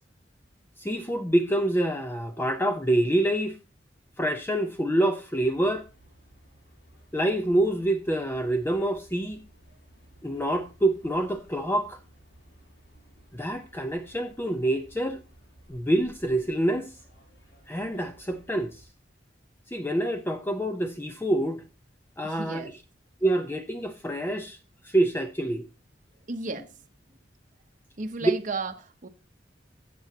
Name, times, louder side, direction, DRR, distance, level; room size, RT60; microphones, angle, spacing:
voice 1, 0.8-3.6 4.2-5.9 7.1-9.4 10.2-12.0 13.3-15.2 15.7-16.9 17.7-18.8 19.7-21.6 22.2-22.7 23.2-24.6 24.8-25.6 28.2-28.3, right 1 dB, 10° left, 0.6 m, -26 dB
sound 1, 5.4-18.9, right 1 dB, 80° left, 6.7 m, -57 dB
voice 2, 22.2-22.8 26.3-26.8 28.0-29.1, right 3 dB, 45° right, 0.8 m, -34 dB
13.0 x 7.8 x 2.8 m
head